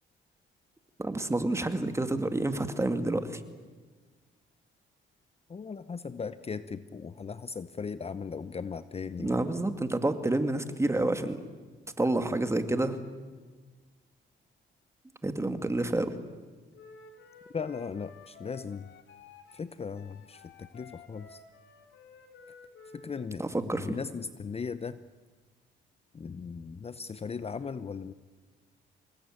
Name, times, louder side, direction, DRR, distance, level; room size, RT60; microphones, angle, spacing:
voice 1, 1.0-3.4 9.2-11.4 12.0-13.0 15.2-16.1 23.4-24.0, right 2 dB, 15° right, 8 dB, 2.3 m, -29 dB
voice 2, 5.5-9.4 17.5-18.9 19.5-21.4 22.9-25.0 26.1-28.1, left 5 dB, 30° left, 14 dB, 0.8 m, -38 dB
Wind instrument woodwind instrument, 16.7-23.2, left 5 dB, 70° left, 3.5 m, -53 dB
26.0 x 20.5 x 9.2 m, 1.4 s
cardioid pair, 90°, 20 cm